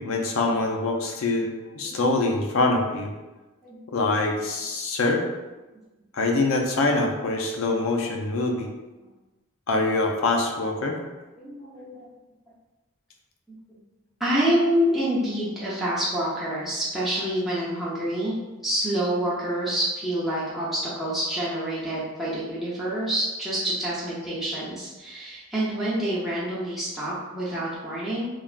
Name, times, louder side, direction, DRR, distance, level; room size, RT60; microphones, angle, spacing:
voice 1, 0.0-3.1 3.9-5.2 6.1-8.7 9.7-11.0, left 2 dB, 70° left, 2 dB, 0.4 m, -24 dB
voice 2, 3.6-4.0 4.3-4.4 11.4-12.1 14.2-18.3 18.6-28.3, right 1 dB, ahead, -10 dB, 0.5 m, -27 dB
3.2 x 2.3 x 2.4 m, 1.1 s
head